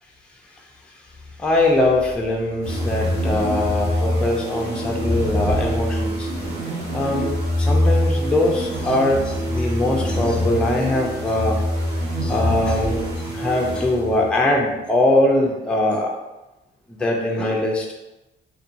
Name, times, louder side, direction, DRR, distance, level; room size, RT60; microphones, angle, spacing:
voice 1, 1.4-6.3 6.9-7.3 7.6-11.6 12.2-16.1 16.9-17.8, left 1 dB, 5° left, -1 dB, 0.4 m, -21 dB
sound 1, 2.6-14.4, equal, 55° right, 0.8 m, -24 dB
2.8 x 2.2 x 2.5 m, 1.0 s
cardioid pair, 90°, 20 cm